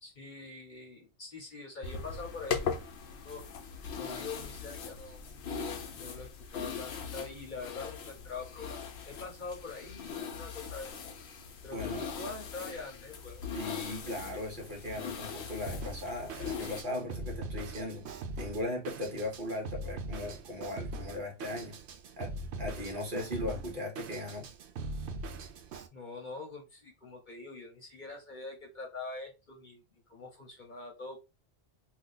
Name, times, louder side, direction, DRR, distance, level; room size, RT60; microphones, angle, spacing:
voice 1, 0.0-2.8 3.2-3.4 4.0-5.2 6.0-8.8 9.1-10.9 11.6-13.4 25.9-29.8 30.1-31.2, left 3 dB, 45° left, 1.0 m, -44 dB
sound 1, 1.8-16.8, left 6 dB, 75° left, 0.9 m, -40 dB
voice 2, 11.7-12.1 13.5-18.1 18.4-21.8 22.2-24.5, left 1 dB, 50° right, 1.1 m, -38 dB
Drum kit, 15.7-25.9, right 2 dB, 75° right, 0.8 m, -41 dB
2.7 x 2.3 x 3.7 m
omnidirectional pair, 1.2 m